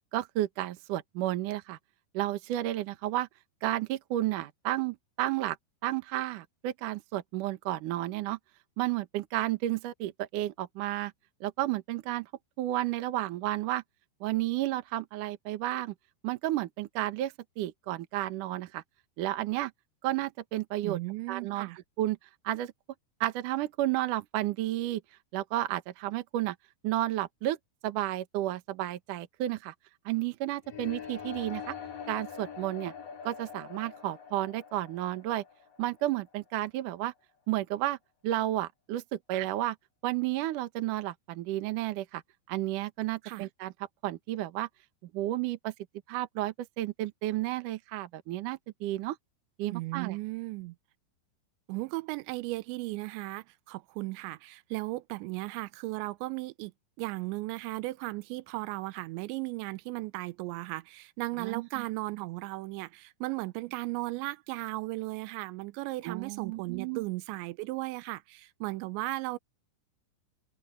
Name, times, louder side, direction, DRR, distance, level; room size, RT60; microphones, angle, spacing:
voice 1, 0.1-1.8 2.1-3.3 3.6-5.6 5.8-8.4 8.8-11.1 11.4-12.3 12.6-13.8 14.2-15.9 16.2-18.8 19.2-19.7 20.0-21.0 21.3-21.7 22.0-22.2 22.4-22.7 23.2-25.0 25.3-26.6 26.8-27.6 27.8-29.7 30.1-31.8 32.1-32.9 33.2-35.4 35.8-37.1 37.5-38.0 38.2-39.8 40.0-42.2 42.5-43.7 44.0-44.7 45.0-45.7 46.1-49.2 49.6-50.2 61.4-61.8 66.0-67.0, right 15 dB, 70° right, 2.1 m, -32 dB
voice 2, 20.8-21.8 43.2-43.5 49.7-50.8 51.7-56.7 57.0-69.4, right 21 dB, 85° right, 3.0 m, -36 dB
sound 1, 30.6-36.6, left 7 dB, 55° left, 3.7 m, -44 dB
omnidirectional pair, 5.1 m